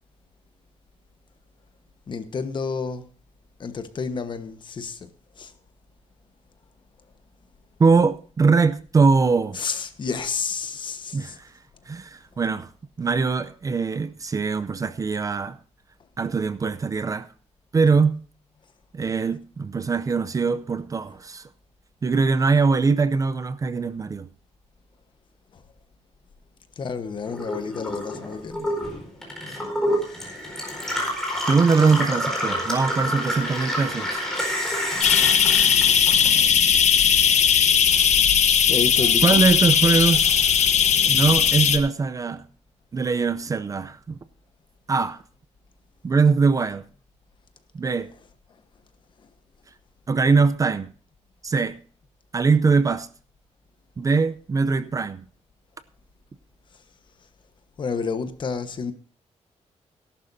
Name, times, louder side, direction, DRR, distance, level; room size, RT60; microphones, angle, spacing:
voice 1, 2.1-3.1 3.6-5.1 5.4-5.5 9.5-11.4 25.5-25.6 26.8-28.7 38.7-39.7 48.1-48.2 57.8-58.9, left 5 dB, 40° left, 1.2 m, -30 dB
voice 2, 7.8-9.6 11.1-11.5 11.9-12.7 13.0-15.6 16.2-17.3 17.7-18.2 18.9-21.5 22.0-24.3 29.5-29.6 31.5-34.2 39.2-40.7 41.1-42.4 42.9-44.2 44.9-45.2 46.0-46.8 47.7-48.1 50.1-50.9 51.4-51.8 52.3-53.1 54.0-55.3, right 4 dB, 30° right, 0.5 m, -22 dB
Gurgling / Water tap faucet / Sink (filling or washing), 27.3-36.8 37.1-38.0, equal, 5° left, 4.3 m, -28 dB
sound 1, 35.0-41.8, left 8 dB, 70° left, 1.2 m, -18 dB
17.5 x 11.5 x 2.7 m
wide cardioid pair, 160°, 12 cm